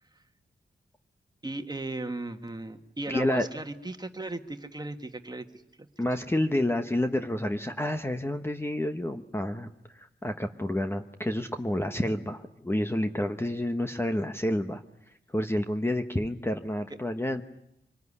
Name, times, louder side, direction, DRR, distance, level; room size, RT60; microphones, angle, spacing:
voice 1, 1.4-5.4 6.1-6.2, right 2 dB, 20° right, 7 dB, 1.7 m, -36 dB
voice 2, 3.1-3.5 6.0-14.8 15.3-17.4, left 1 dB, 15° left, 6 dB, 1.1 m, -29 dB
25.5 x 19.0 x 9.8 m, 0.83 s
wide cardioid pair, 95°, 18 cm